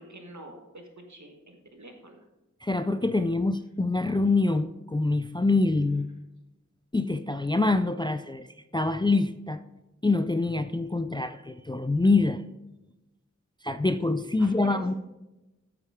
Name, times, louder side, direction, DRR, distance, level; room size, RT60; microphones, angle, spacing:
voice 1, 0.0-2.2 14.4-14.8, right 1 dB, 65° right, 3 dB, 1.5 m, -46 dB
voice 2, 2.6-6.1 6.9-8.5 8.7-9.6 10.0-12.4 13.6-14.9, left 3 dB, 15° left, 11 dB, 0.3 m, -25 dB
9.0 x 8.6 x 3.6 m, 1.0 s
wide cardioid pair, 45°, 31 cm